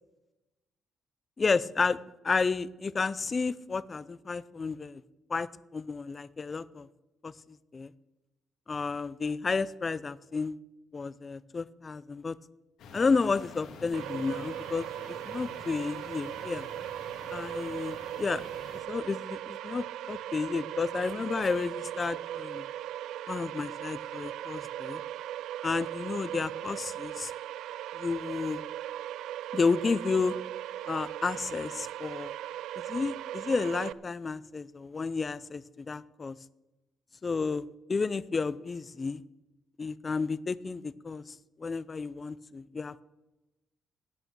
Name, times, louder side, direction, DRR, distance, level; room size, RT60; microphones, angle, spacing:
voice 1, 1.4-2.0 2.2-5.0 5.3-6.9 7.2-7.9 8.7-10.5 10.9-12.4 12.9-16.7 17.3-18.4 18.9-22.6 23.3-25.0 25.6-27.3 28.0-28.6 29.5-30.4 30.9-32.3 32.9-36.4 37.2-39.2 39.8-41.2 41.6-43.0, left 4 dB, 35° left, 19 dB, 0.5 m, -31 dB
sound 1, 12.8-18.8, left 3 dB, 80° left, 2.2 m, -49 dB
sound 2, 13.9-33.9, right 12 dB, 85° right, 0.3 m, -38 dB
12.0 x 8.5 x 6.9 m, 1.0 s
cardioid pair, 90°, 0 cm